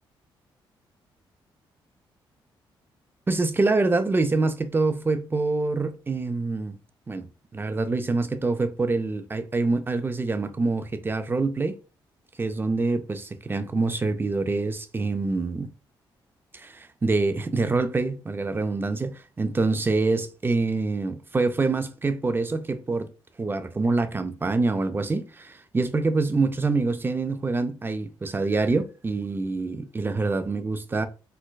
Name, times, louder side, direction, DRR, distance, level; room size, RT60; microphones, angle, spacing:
voice 1, 3.3-6.8 7.1-7.3 7.5-11.8 12.4-15.7 16.5-23.1 23.4-31.1, right 3 dB, 25° right, 0.4 m, -25 dB
4.4 x 2.1 x 2.2 m
cardioid pair, 70°, 9 cm